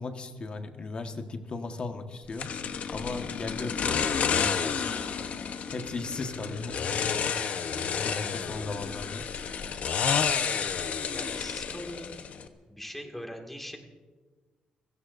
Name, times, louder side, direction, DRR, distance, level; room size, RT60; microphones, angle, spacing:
voice 1, 0.0-2.5 2.9-4.0 4.3-4.8 5.7-7.1 8.0-9.2, left 3 dB, 40° left, 5 dB, 1.5 m, -36 dB
sound 1, 2.4-12.5, left 6 dB, 60° left, 1.0 m, -30 dB
voice 2, 11.1-12.1 12.7-13.8, equal, 5° left, 2 dB, 2.1 m, -41 dB
30.0 x 17.0 x 2.6 m, 1.4 s
cardioid pair, 115°, 3 cm